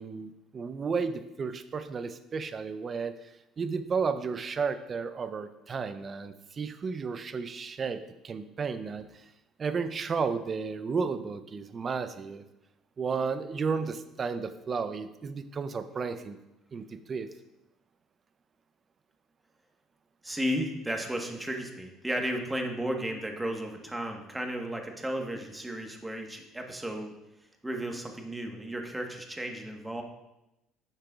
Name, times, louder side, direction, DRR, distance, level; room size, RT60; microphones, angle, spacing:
voice 1, 0.0-3.1 3.6-9.1 9.6-12.4 13.0-16.4 16.7-17.3, right 5 dB, 40° right, 11 dB, 0.6 m, -33 dB
voice 2, 20.2-27.1 27.6-30.0, equal, 10° right, 3 dB, 1.3 m, -34 dB
9.9 x 6.5 x 2.4 m, 0.92 s
supercardioid pair, 85°, 0 cm